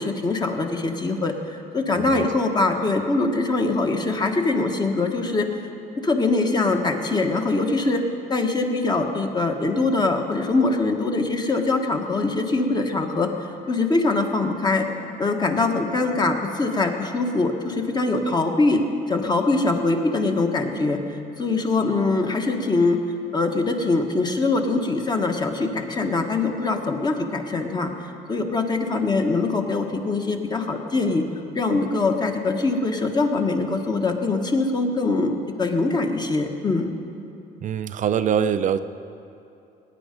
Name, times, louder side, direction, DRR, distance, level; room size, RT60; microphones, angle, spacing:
voice 1, 0.0-1.3 1.7-5.5 6.0-8.0 8.3-13.3 13.7-14.9 15.2-21.0 21.4-23.0 23.3-27.9 28.3-31.2 31.5-36.9, left 3 dB, 25° left, 4 dB, 1.2 m, -23 dB
voice 2, 37.6-38.8, right 8 dB, 50° right, 11 dB, 0.5 m, -23 dB
18.5 x 9.2 x 5.2 m, 2.7 s
cardioid pair, 110°, 17 cm